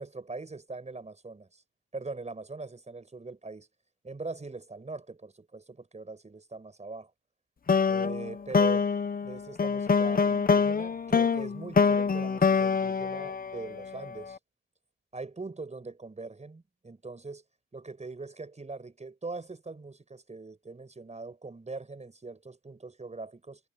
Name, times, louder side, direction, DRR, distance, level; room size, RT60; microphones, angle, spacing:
voice 1, 0.0-1.6 1.9-3.7 4.0-7.1 7.9-8.9 9.2-14.4 15.1-17.4 17.7-23.6, right 3 dB, 20° right, 5.7 m, -41 dB
sound 1, 7.7-14.1, left 5 dB, 30° left, 1.1 m, -25 dB
cardioid pair, 90°, 30 cm